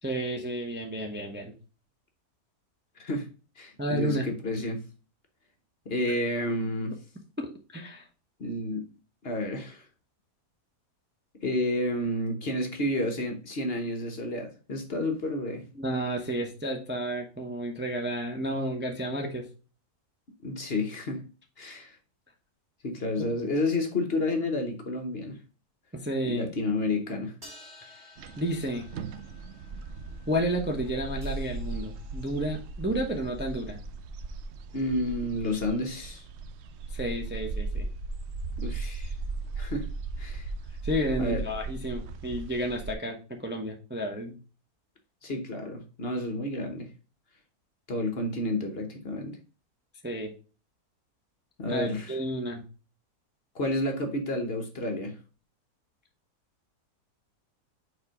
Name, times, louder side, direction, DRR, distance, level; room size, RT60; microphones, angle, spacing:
voice 1, 0.0-1.5 3.8-4.3 7.4-8.0 15.8-19.5 25.9-26.5 28.4-28.9 30.3-33.8 36.9-37.9 40.8-44.4 50.0-50.3 51.7-52.6, equal, 10° right, 0.7 m, -31 dB
voice 2, 3.0-3.3 3.6-4.8 5.9-6.9 8.4-8.8 9.2-9.8 11.4-15.6 20.4-21.2 21.6-22.0 22.8-25.4 26.2-27.3 34.7-36.3 38.6-39.2 39.6-39.9 40.2-40.5 41.2-41.4 45.2-46.9 47.9-49.4 51.6-52.2 53.5-55.2, left 1 dB, 45° left, 1.1 m, -30 dB
sound 1, 27.4-32.7, left 2 dB, 30° right, 3.1 m, -54 dB
sound 2, 28.2-42.9, right 3 dB, 70° right, 0.7 m, -37 dB
4.9 x 4.3 x 4.9 m
omnidirectional pair, 1.6 m